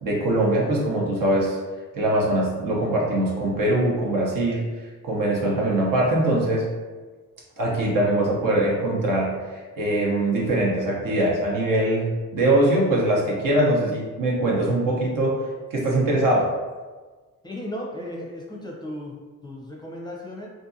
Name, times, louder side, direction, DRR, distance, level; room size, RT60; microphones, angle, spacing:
voice 1, 0.0-1.6 1.9-4.7 5.0-6.7 7.6-15.3 15.7-16.5, right 1 dB, 70° right, -3 dB, 0.9 m, -22 dB
voice 2, 17.4-20.5, left 1 dB, 15° left, -3 dB, 0.5 m, -35 dB
2.6 x 2.5 x 2.6 m, 1.3 s
cardioid pair, 85°, 33 cm